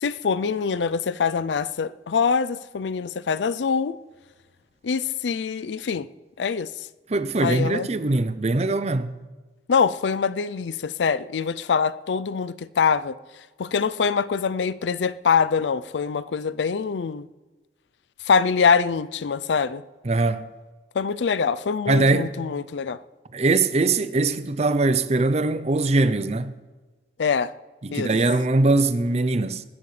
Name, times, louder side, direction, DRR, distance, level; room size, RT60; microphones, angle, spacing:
voice 1, 0.0-4.0 4.8-6.1 6.4-6.7 7.4-7.9 9.7-13.2 13.6-17.3 18.3-19.8 20.9-23.0 27.2-27.5 27.9-28.1, left 5 dB, 85° left, 0.5 m, -24 dB
voice 2, 7.1-9.1 20.0-20.5 21.9-22.3 23.3-26.5 27.8-29.6, right 2 dB, 40° right, 0.6 m, -22 dB
19.5 x 14.0 x 3.3 m
head